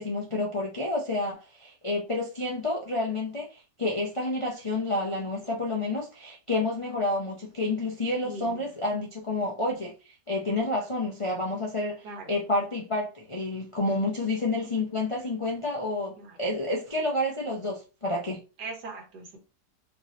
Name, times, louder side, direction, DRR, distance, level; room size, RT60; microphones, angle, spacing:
voice 1, 0.0-18.4, left 2 dB, 50° left, 0.3 m, -29 dB
voice 2, 8.2-8.7 12.0-12.4 16.2-16.4 18.6-19.4, right 2 dB, 75° right, 1.8 m, -40 dB
4.4 x 2.8 x 3.1 m
omnidirectional pair, 1.8 m